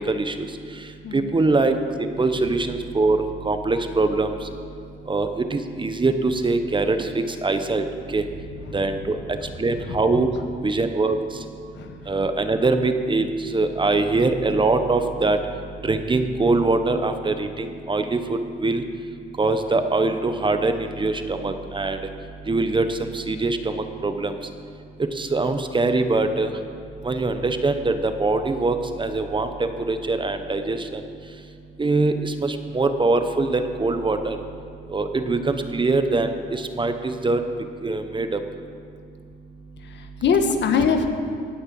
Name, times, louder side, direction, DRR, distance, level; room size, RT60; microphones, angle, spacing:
voice 1, 0.1-0.5 1.1-4.4 5.1-7.8 8.1-8.2 8.7-9.2 9.6-10.3 10.6-11.2 12.1-13.3 13.5-15.4 15.8-18.8 19.4-22.0 22.5-24.3 25.2-26.5 27.0-31.0 31.8-34.4 34.9-37.4 37.8-38.4, right 3 dB, 25° right, 8 dB, 1.0 m, -23 dB
voice 2, 1.0-1.4 2.4-2.5 8.6-9.3 9.8-10.2 11.7-12.1 36.7-36.8 39.8-41.1, left 5 dB, 65° left, 6 dB, 1.3 m, -25 dB
18.0 x 6.6 x 7.7 m, 2.2 s
cardioid pair, 90°, 20 cm